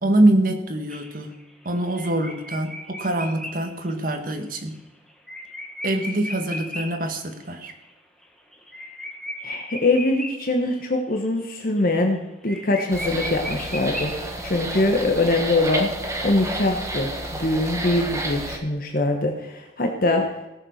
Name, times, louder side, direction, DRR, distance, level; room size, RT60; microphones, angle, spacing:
voice 1, 0.0-1.3 1.6-4.8 5.8-7.7, right 1 dB, 50° right, 5 dB, 1.7 m, -24 dB
sound 1, 0.9-7.1 7.4-7.5 7.8-7.9 8.2-10.8 11.2-11.5 11.8-11.9 12.2-12.3 12.5-14.6, equal, 5° left, 1.5 m, -36 dB
voice 2, 9.4-14.1 14.4-15.9 16.2-20.3, left 2 dB, 55° left, 3 dB, 1.3 m, -23 dB
sound 2, 12.9-18.6, right 1 dB, 20° right, 1.6 m, -30 dB
17.0 x 7.2 x 6.5 m, 1.0 s
head